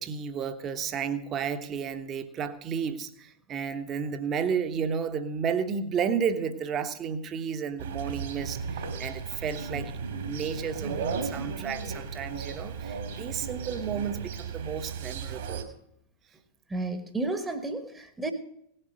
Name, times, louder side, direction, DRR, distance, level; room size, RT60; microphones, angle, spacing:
voice 1, 0.0-15.7, right 7 dB, 30° right, 9 dB, 1.2 m, -32 dB
sound 1, 7.8-15.6, right 5 dB, 60° right, 2.3 m, -35 dB
voice 2, 16.7-18.3, right 2 dB, 10° right, 7 dB, 1.2 m, -32 dB
17.5 x 7.7 x 6.2 m, 0.74 s
figure-of-eight pair, 90°, 0 cm